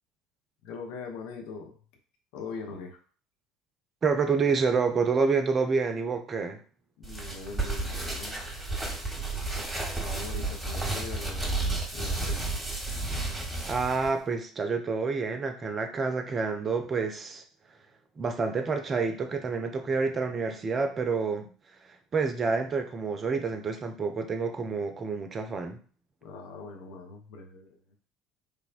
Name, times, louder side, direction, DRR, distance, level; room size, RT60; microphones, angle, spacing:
voice 1, 0.6-1.8 2.3-3.0 7.0-8.4 9.5-11.7 11.9-12.4 26.2-27.8, left 4 dB, 60° left, 2 dB, 0.6 m, -41 dB
voice 2, 4.0-6.6 13.7-17.4 18.2-21.5 21.9-25.8, right 4 dB, 30° right, 6 dB, 0.4 m, -28 dB
sound 1, 7.0-14.1, right 2 dB, 10° right, 0.9 m, -32 dB
3.3 x 2.1 x 2.4 m, 0.41 s
figure-of-eight pair, 60°, 0 cm